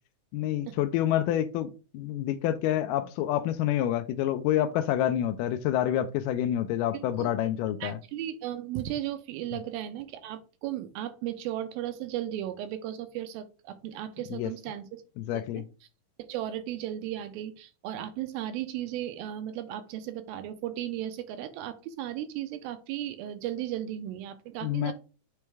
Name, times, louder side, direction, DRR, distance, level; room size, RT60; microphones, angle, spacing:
voice 1, 0.3-8.0 14.3-14.5 15.2-15.6 24.6-24.9, left 11 dB, 85° left, 1.9 m, -28 dB
voice 2, 6.9-7.3 7.8-15.0 15.3-15.6 16.2-24.9, right 12 dB, 85° right, 2.4 m, -35 dB
8.5 x 3.2 x 3.4 m
omnidirectional pair, 4.3 m